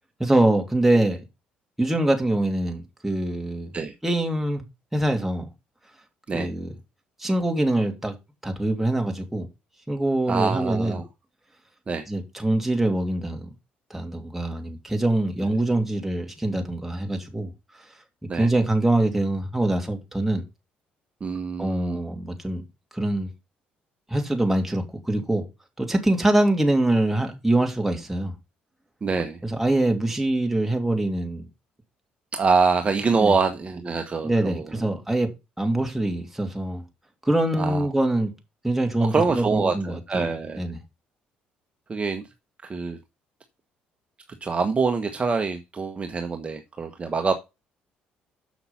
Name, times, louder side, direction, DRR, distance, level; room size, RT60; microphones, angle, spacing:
voice 1, 0.2-1.2 1.8-3.7 4.0-4.6 4.9-5.5 6.3-6.7 7.2-8.2 8.4-9.5 9.9-11.0 12.1-13.5 13.9-17.5 18.3-20.4 21.6-22.6 22.9-23.3 24.1-25.4 25.8-28.3 29.4-31.5 33.2-33.3 34.2-36.8 37.2-38.3 38.6-40.3 40.5-40.8, right 1 dB, 5° right, 2.7 m, -24 dB
voice 2, 10.3-11.1 11.9-12.1 18.3-18.5 21.2-22.0 29.0-29.4 32.3-34.9 37.6-37.9 39.1-40.7 41.9-42.2 42.6-43.0 44.4-47.3, right 4 dB, 30° right, 1.3 m, -25 dB
7.3 x 5.9 x 5.8 m
supercardioid pair, 70°, 4 cm